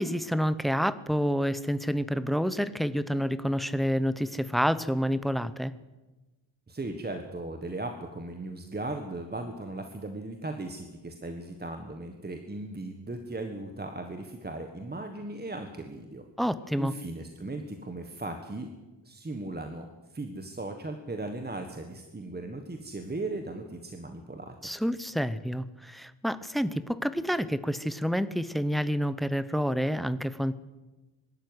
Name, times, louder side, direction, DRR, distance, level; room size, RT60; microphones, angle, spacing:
voice 1, 0.0-5.7 16.4-16.9 24.6-30.6, equal, ahead, 15 dB, 0.6 m, -28 dB
voice 2, 6.7-16.2 16.8-18.7 19.0-24.5, right 2 dB, 20° right, 5 dB, 1.4 m, -37 dB
22.5 x 12.5 x 9.7 m, 1.1 s
wide cardioid pair, 175°, 46 cm